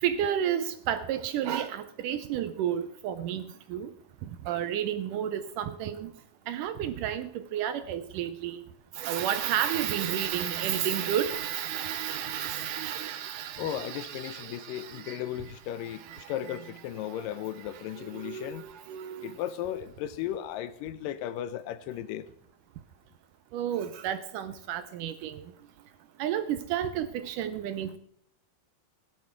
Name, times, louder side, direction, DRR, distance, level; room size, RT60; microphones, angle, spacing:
voice 1, 0.0-3.4 3.7-3.9 4.5-6.1 6.5-8.6 9.0-15.2 16.1-16.3 18.0-19.3 23.5-25.4 26.2-28.0, right 10 dB, 75° right, 2.0 m, -31 dB
voice 2, 13.6-18.6 19.2-22.3, left 11 dB, 80° left, 2.1 m, -36 dB
15.5 x 11.5 x 4.5 m
omnidirectional pair, 4.2 m